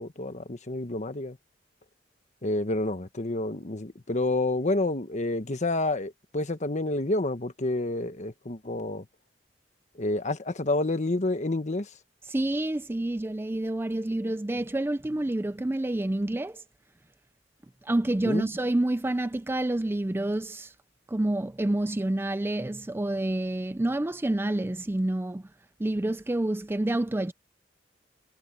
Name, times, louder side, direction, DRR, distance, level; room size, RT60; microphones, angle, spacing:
voice 1, 0.0-1.4 2.4-9.0 10.0-11.9 18.3-18.5, left 2 dB, 40° left, 1.2 m, -29 dB
voice 2, 12.3-16.6 17.8-20.7 21.1-25.5 25.8-27.3, right 1 dB, 10° right, 0.4 m, -28 dB
head